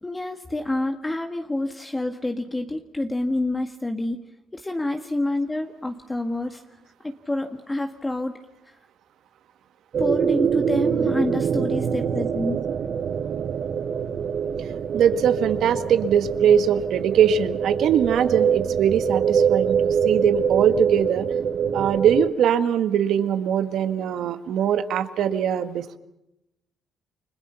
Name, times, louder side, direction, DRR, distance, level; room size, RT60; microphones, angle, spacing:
voice 1, 0.0-4.2 4.5-6.6 7.0-8.4 8.6-8.8 10.0-12.6, left 2 dB, 15° left, 4 dB, 1.9 m, -28 dB
sound 1, 9.9-22.3, right 7 dB, 55° right, 1.2 m, -24 dB
voice 2, 14.9-21.3 21.7-26.0, right 8 dB, 75° right, 9 dB, 1.8 m, -21 dB
29.5 x 25.5 x 5.7 m, 0.86 s
cardioid pair, 90°, 0 cm